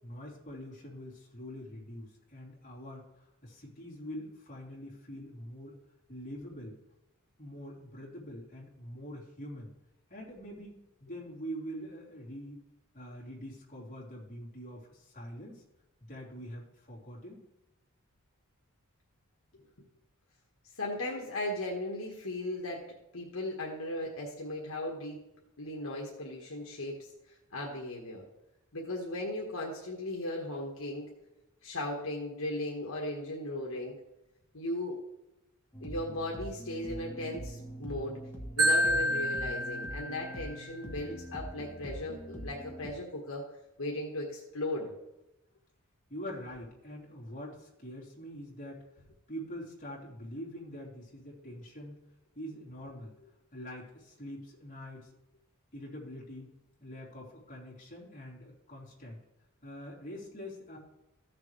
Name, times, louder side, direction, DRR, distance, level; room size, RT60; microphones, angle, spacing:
voice 1, 0.0-5.7 6.1-6.8 7.4-9.7 10.1-12.6 12.9-15.6 16.1-17.4 46.1-48.8 49.3-52.0 52.3-53.1 53.5-55.1 55.7-56.5 56.8-59.2 59.6-60.8, equal, 35° left, -5 dB, 3.2 m, -44 dB
voice 2, 20.7-22.8 23.1-25.2 25.6-28.2 28.7-31.1 31.6-34.0 34.5-35.0 35.8-38.2 38.6-43.4 43.8-44.9, left 1 dB, 65° left, -1 dB, 1.5 m, -37 dB
sound 1, 35.7-42.9, equal, 10° left, 1.4 m, -43 dB
Marimba xylophone, 38.6-40.7, right 1 dB, 80° right, 2.2 m, -29 dB
15.0 x 6.8 x 3.3 m, 0.94 s
head